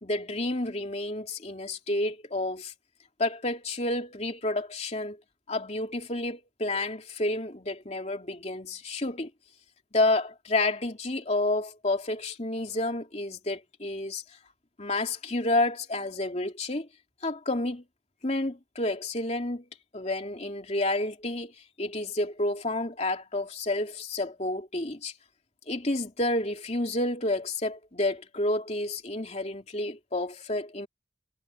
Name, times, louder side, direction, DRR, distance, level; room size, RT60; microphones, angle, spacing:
voice 1, 0.0-2.7 3.2-5.2 5.5-9.3 9.9-14.2 14.8-16.9 17.2-17.8 18.2-19.7 19.9-21.5 21.8-25.1 25.7-30.9, left 2 dB, 35° left, 3.0 m, -30 dB
head